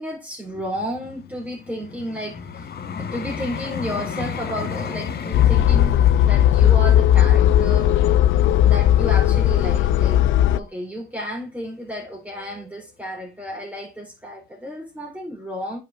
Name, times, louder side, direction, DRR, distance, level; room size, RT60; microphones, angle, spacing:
voice 1, 0.0-8.0 8.7-10.3 10.5-15.8, equal, 10° right, 4.0 m, -32 dB
Vehicle, 0.5-9.6 10.2-10.4, left 6 dB, 55° left, 1.4 m, -34 dB
sound 1, 5.3-10.6, left 11 dB, 75° left, 0.6 m, -16 dB
9.4 x 6.2 x 2.6 m
cardioid pair, 90°, 20 cm